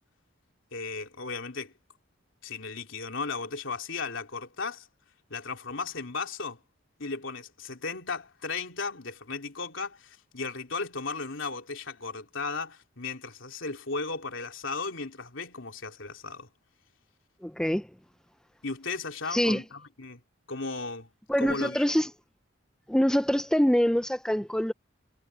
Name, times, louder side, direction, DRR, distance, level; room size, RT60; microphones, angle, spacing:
voice 1, 0.7-1.7 2.4-4.9 5.3-6.6 7.0-16.5 18.6-20.2 20.5-21.1 21.4-21.8, left 4 dB, 75° left, 3.1 m, -35 dB
voice 2, 17.4-17.9 19.3-19.6 21.3-22.1 22.9-24.7, equal, 5° left, 0.5 m, -24 dB
head